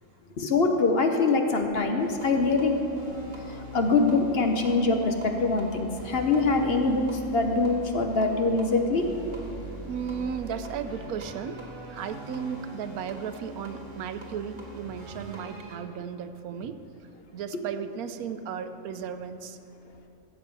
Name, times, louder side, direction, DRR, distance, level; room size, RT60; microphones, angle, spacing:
voice 1, 0.4-2.7 3.7-9.1, left 3 dB, 50° left, 4 dB, 0.9 m, -24 dB
sound 1, 2.0-15.8, right 2 dB, 35° right, 1.8 m, -42 dB
voice 2, 9.8-11.6 11.9-16.8 17.3-19.6, right 7 dB, 85° right, 10 dB, 1.1 m, -35 dB
16.0 x 7.1 x 4.6 m, 2.9 s
omnidirectional pair, 1.5 m